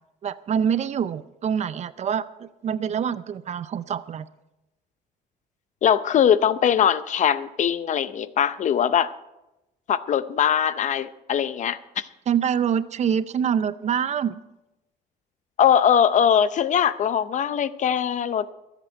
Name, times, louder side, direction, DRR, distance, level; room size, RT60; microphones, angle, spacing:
voice 1, 0.2-4.3 12.3-14.4, right 8 dB, 45° right, 15 dB, 0.6 m, -25 dB
voice 2, 5.8-9.1 9.9-12.1 15.6-18.5, left 8 dB, 45° left, 15 dB, 0.6 m, -21 dB
23.0 x 8.2 x 4.5 m, 0.95 s
cardioid pair, 110°, 17 cm